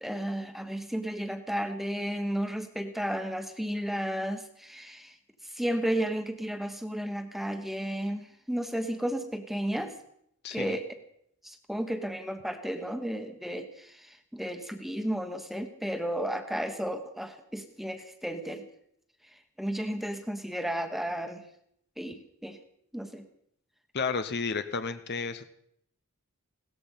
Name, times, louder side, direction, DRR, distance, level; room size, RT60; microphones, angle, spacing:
voice 1, 0.0-5.2 5.4-9.9 10.5-11.0 11.4-18.7 19.6-21.4 22.0-22.6 22.9-23.3, equal, ahead, 7 dB, 1.3 m, -33 dB
voice 2, 10.4-10.7 23.9-25.5, left 5 dB, 50° left, 10 dB, 0.8 m, -32 dB
17.5 x 14.0 x 5.7 m, 0.74 s
head